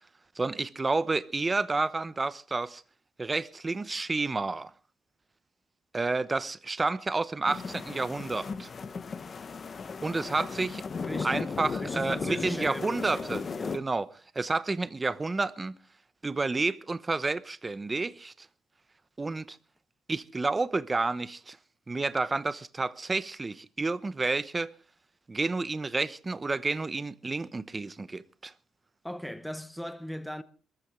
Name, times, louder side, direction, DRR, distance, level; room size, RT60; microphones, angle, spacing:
voice 1, 0.4-2.8 3.2-4.7 5.9-8.7 10.0-10.8 11.2-13.5 13.7-14.1 14.3-15.7 16.2-18.5 19.2-19.6 20.1-21.6 21.9-24.7 25.3-28.5, right 3 dB, 25° right, 0.9 m, -30 dB
sound 1, 7.5-13.8, left 5 dB, 40° left, 1.1 m, -36 dB
voice 2, 11.0-11.5 11.8-13.8 29.0-30.4, equal, ahead, 1.0 m, -38 dB
22.5 x 14.5 x 3.7 m
cardioid pair, 90°, 0 cm